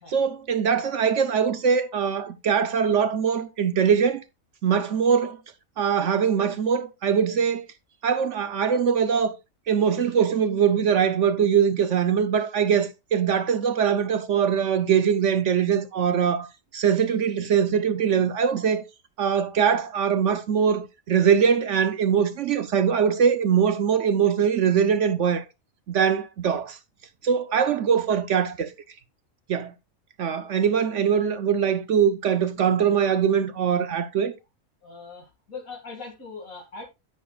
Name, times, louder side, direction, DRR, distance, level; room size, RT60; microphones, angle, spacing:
voice 1, 0.1-4.2 4.6-5.4 5.8-7.7 8.0-9.4 9.7-16.5 16.7-18.8 19.2-25.4 25.9-26.8 27.2-28.7 29.5-29.7 30.2-34.3, right 7 dB, 65° right, 1.0 m, -22 dB
voice 2, 34.8-36.8, left 4 dB, 80° left, 2.7 m, -40 dB
10.0 x 9.2 x 2.4 m
omnidirectional pair, 1.4 m